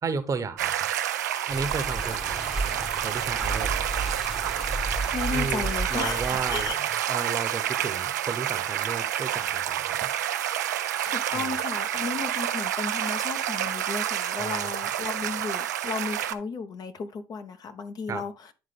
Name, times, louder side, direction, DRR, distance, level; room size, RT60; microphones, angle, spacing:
voice 1, 0.0-0.9 1.5-3.9 5.3-10.1 11.3-11.6 14.4-14.7 18.1-18.2, right 5 dB, 35° right, 0.9 m, -34 dB
sound 1, 0.6-16.3, right 11 dB, 90° right, 0.4 m, -29 dB
sound 2, 1.5-6.7, right 2 dB, ahead, 0.9 m, -33 dB
voice 2, 5.1-6.2 6.5-6.8 7.1-7.2 11.0-18.5, left 5 dB, 45° left, 0.8 m, -34 dB
10.0 x 3.7 x 3.4 m
hypercardioid pair, 65°, 9 cm